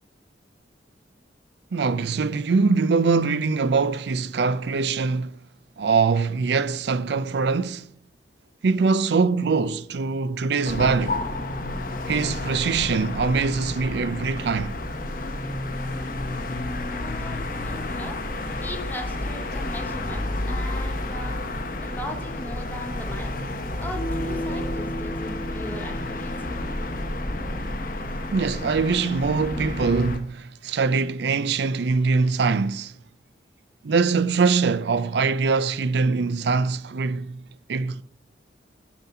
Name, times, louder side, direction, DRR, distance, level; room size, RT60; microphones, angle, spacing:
voice 1, 1.7-5.4 5.8-7.9 8.6-11.2 12.1-14.8 28.3-33.0 33.8-38.0, right 4 dB, 70° right, 0.4 m, -23 dB
sound 1, 10.6-30.2, left 2 dB, 50° left, 1.0 m, -30 dB
voice 2, 16.9-18.2 18.6-21.4 21.8-23.4 23.8-26.6, equal, 10° left, 1.0 m, -38 dB
Bass guitar, 23.9-28.4, right 1 dB, 85° right, 3.8 m, -36 dB
7.1 x 5.9 x 5.6 m
head